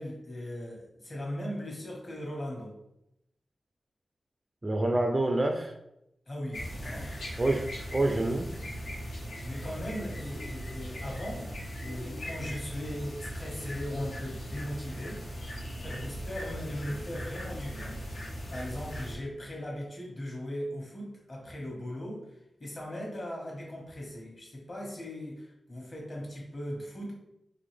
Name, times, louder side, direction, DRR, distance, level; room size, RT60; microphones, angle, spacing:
voice 1, 0.0-2.8 6.3-7.2 9.4-11.5 11.8-15.3 15.8-18.0 18.5-27.1, left 1 dB, 35° left, -2 dB, 1.4 m, -38 dB
voice 2, 4.6-5.7 7.4-8.5, right 2 dB, 25° right, 3 dB, 0.3 m, -27 dB
sound 1, 6.5-19.1, equal, 85° left, 1.6 m, -39 dB
3.9 x 3.3 x 3.3 m, 0.83 s
wide cardioid pair, 155°, 0 cm